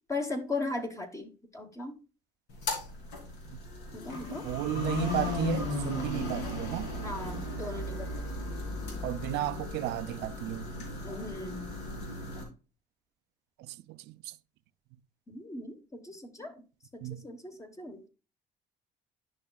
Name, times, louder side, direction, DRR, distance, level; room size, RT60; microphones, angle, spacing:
voice 1, 0.1-1.9 3.9-4.5 7.0-8.1 11.0-11.7 15.3-16.5 16.9-18.1, left 2 dB, 20° left, 1.1 m, -38 dB
sound 1, 2.5-12.4, left 2 dB, 80° left, 3.0 m, -36 dB
voice 2, 4.4-6.9 9.0-10.6 13.7-14.3 17.0-17.2, right 16 dB, 80° right, 0.5 m, -34 dB
10.5 x 5.8 x 2.3 m
cardioid pair, 110°, 17 cm